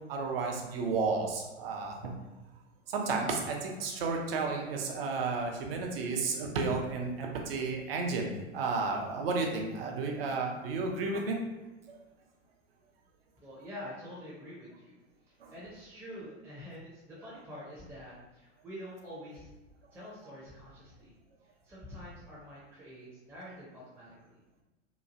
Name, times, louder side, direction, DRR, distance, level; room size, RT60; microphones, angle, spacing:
voice 1, 0.1-2.1 2.9-11.4 11.9-12.0 15.4-15.5, right 4 dB, 50° right, 1 dB, 0.6 m, -32 dB
voice 2, 13.4-15.0 15.3-19.5 19.9-21.1 21.6-24.4, equal, 5° right, -8 dB, 0.6 m, -46 dB
3.0 x 2.3 x 2.5 m, 1.1 s
figure-of-eight pair, 100°, 37 cm